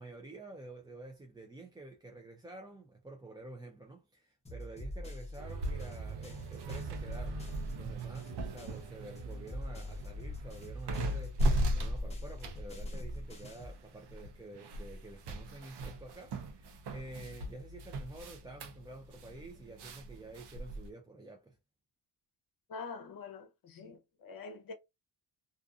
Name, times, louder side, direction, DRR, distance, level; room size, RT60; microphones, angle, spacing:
voice 1, 0.0-7.5 7.7-21.6, right 2 dB, 10° right, 0.4 m, -49 dB
sound 1, 4.4-8.9 9.1-13.8, equal, 15° left, 0.8 m, -45 dB
sound 2, 5.4-20.9, right 1 dB, 65° right, 0.7 m, -38 dB
voice 2, 22.7-24.7, left 4 dB, 50° left, 0.8 m, -45 dB
2.5 x 2.5 x 2.3 m
cardioid pair, 105°, 43 cm